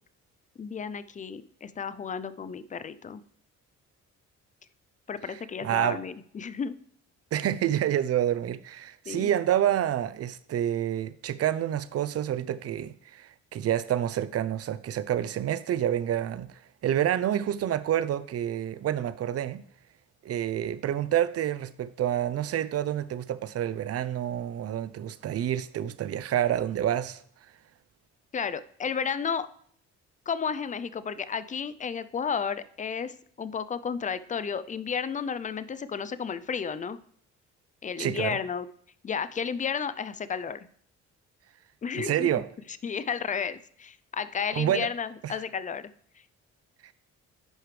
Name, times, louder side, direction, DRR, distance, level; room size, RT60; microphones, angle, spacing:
voice 1, 0.6-3.2 5.1-6.8 9.1-9.3 28.3-29.5 30.3-37.0 37.8-38.7 39.0-40.7 41.8-42.3 42.8-45.9, left 6 dB, 25° left, 15 dB, 0.4 m, -32 dB
voice 2, 5.6-6.0 7.3-16.5 16.8-19.6 20.2-27.2 38.0-38.4 42.0-42.5 44.5-44.9 45.2-45.3, right 11 dB, 55° right, 15 dB, 0.5 m, -28 dB
10.5 x 4.9 x 3.3 m, 0.62 s
cardioid pair, 90°, 30 cm